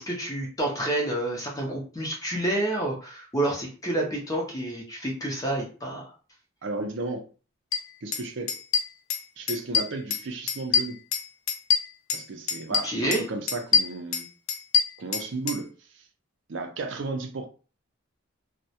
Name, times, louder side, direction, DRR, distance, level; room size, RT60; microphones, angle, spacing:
voice 1, 0.0-6.1 12.8-13.2, right 1 dB, 15° left, 0.5 m, -29 dB
voice 2, 6.6-7.2 8.0-8.6 9.4-11.0 12.1-14.3 15.0-16.0 16.5-17.5, right 3 dB, 60° right, 0.5 m, -34 dB
sound 1, 7.7-7.8 8.1-8.2 8.5-9.2 9.5-10.2 10.5-12.2 12.5-13.2 13.5-15.6, left 6 dB, 75° left, 0.5 m, -25 dB
2.2 x 2.0 x 2.7 m
head